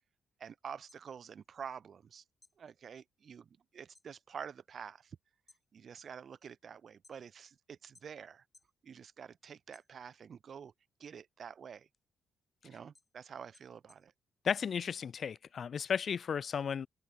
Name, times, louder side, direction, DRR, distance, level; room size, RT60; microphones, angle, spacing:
voice 1, 0.4-2.2 2.6-5.2 5.7-8.4 8.8-10.7 11.0-11.9 12.6-14.1, right 7 dB, 50° right, 0.4 m, -48 dB
sound 1, 0.9-2.1 2.4-4.2 4.5-5.0 5.3-7.5 7.9-8.8 9.2-10.4 10.8-15.4, left 2 dB, 20° left, 3.7 m, -68 dB
voice 2, 14.4-16.9, left 7 dB, 50° left, 0.6 m, -34 dB
open air
cardioid pair, 90°, 0 cm